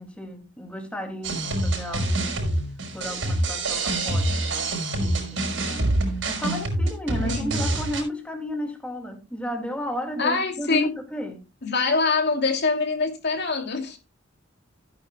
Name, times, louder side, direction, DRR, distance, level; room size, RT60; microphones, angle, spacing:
voice 1, 0.0-2.4 2.9-5.9 6.3-11.4, equal, 5° left, 2.1 m, -33 dB
sound 1, 1.2-8.0, right 2 dB, 75° right, 5.5 m, -26 dB
voice 2, 7.2-7.6 10.2-10.9 11.6-14.0, left 4 dB, 60° left, 2.6 m, -24 dB
16.0 x 9.6 x 2.2 m
head